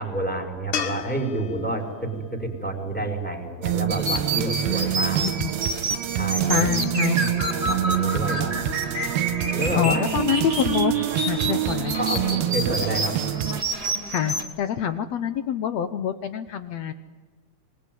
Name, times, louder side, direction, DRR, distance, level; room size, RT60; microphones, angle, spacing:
voice 1, 0.0-5.3 6.1-6.7 7.3-8.5 9.5-10.0 11.9-13.1, right 2 dB, ahead, 3 dB, 4.4 m, -29 dB
sound 1, 0.7-4.0 7.2-7.3, left 8 dB, 60° left, 2.7 m, -35 dB
sound 2, 3.6-13.6, right 12 dB, 80° right, 2.9 m, -26 dB
sound 3, 3.9-14.4, right 2 dB, 25° right, 3.3 m, -29 dB
voice 2, 4.6-5.5 6.4-7.3 9.7-10.9 11.2-12.0 14.1-16.9, left 9 dB, 75° left, 11 dB, 1.5 m, -26 dB
26.0 x 20.5 x 9.4 m, 1.3 s
omnidirectional pair, 4.3 m